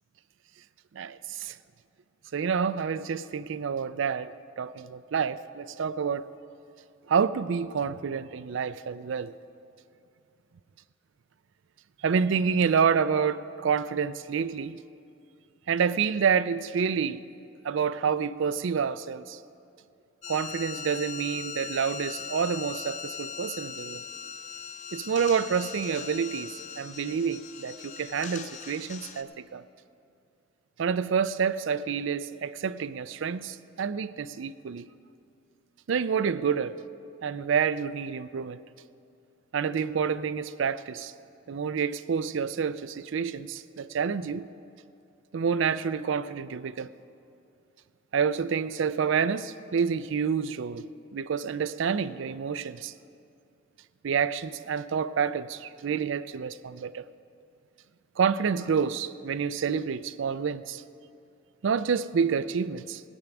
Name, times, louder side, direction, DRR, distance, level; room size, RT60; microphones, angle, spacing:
voice 1, 0.9-1.6 2.3-6.3 7.1-9.4 12.0-14.8 15.7-17.2 17.6-19.4 20.3-24.0 24.9-29.6 30.8-34.9 35.9-36.8 37.2-38.6 39.5-41.1 41.5-44.5 45.3-46.9 48.1-52.9 54.0-57.1 58.2-60.8 61.6-63.0, right 6 dB, 65° right, 0.4 m, -28 dB
sound 1, 20.2-29.2, left 7 dB, 40° left, 0.7 m, -40 dB
16.5 x 6.0 x 9.0 m
head